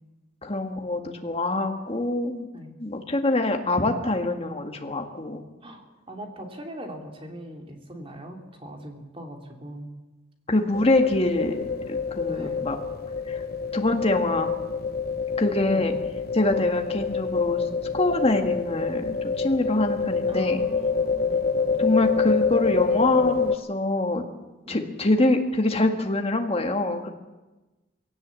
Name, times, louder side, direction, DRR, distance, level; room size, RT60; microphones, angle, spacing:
voice 1, 0.4-2.5 2.8-5.4 10.5-12.8 13.3-13.4 13.7-14.5 15.4-16.0 16.3-17.6 17.9-20.6 21.8-24.3 24.7-27.1, left 2 dB, 30° left, 4 dB, 1.8 m, -25 dB
voice 2, 5.6-9.9 12.2-12.6 15.7-15.9 20.3-21.3 24.7-24.9, right 1 dB, 30° right, 3 dB, 2.8 m, -41 dB
sound 1, 10.7-23.5, left 5 dB, 50° left, 0.9 m, -27 dB
20.0 x 17.5 x 8.4 m, 1.1 s
head